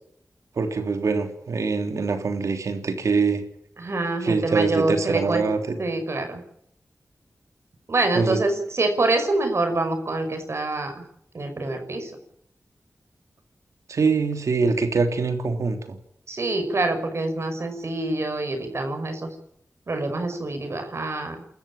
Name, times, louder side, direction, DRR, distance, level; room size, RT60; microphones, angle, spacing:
voice 1, 0.5-3.4 4.2-5.8 8.1-8.4 13.9-16.0, right 4 dB, 85° right, 6 dB, 3.2 m, -24 dB
voice 2, 3.8-5.4 5.8-6.4 7.9-10.9 11.3-12.1 16.3-19.3 19.9-21.4, right 2 dB, 60° right, 6 dB, 5.7 m, -26 dB
29.5 x 14.0 x 8.8 m, 0.73 s
wide cardioid pair, 60°, 5 cm